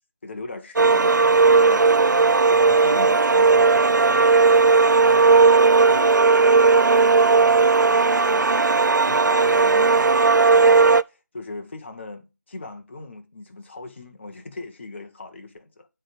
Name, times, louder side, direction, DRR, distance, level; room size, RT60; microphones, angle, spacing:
voice 1, 0.2-1.8 2.5-5.2 5.9-8.5 9.0-10.8 11.1-15.9, left 2 dB, 40° left, 0.9 m, -39 dB
sound 1, 0.8-11.0, right 4 dB, 85° right, 0.4 m, -16 dB
7.5 x 3.4 x 5.1 m
figure-of-eight pair, 160°, 10 cm